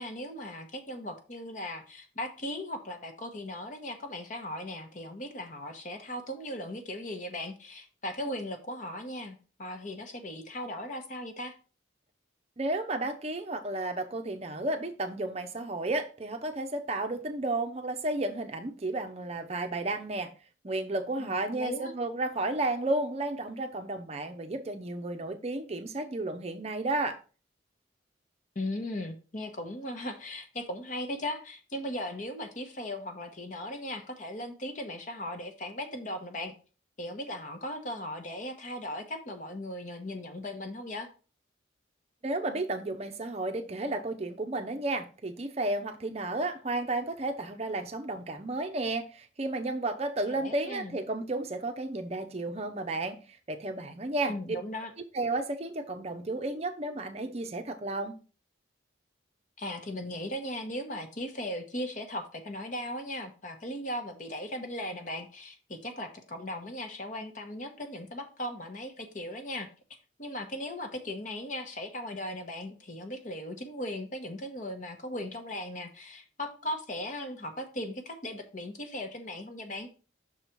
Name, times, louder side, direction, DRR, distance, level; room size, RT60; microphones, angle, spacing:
voice 1, 0.0-11.5 21.2-21.9 28.5-36.5 37.0-41.1 50.3-51.0 54.3-54.9 59.6-69.7 70.2-79.9, left 1 dB, 40° left, 1.0 m, -38 dB
voice 2, 12.6-20.3 20.6-27.2 42.2-53.2 53.5-54.6 55.1-58.1, right 2 dB, 35° right, 0.6 m, -32 dB
6.3 x 4.1 x 4.5 m
head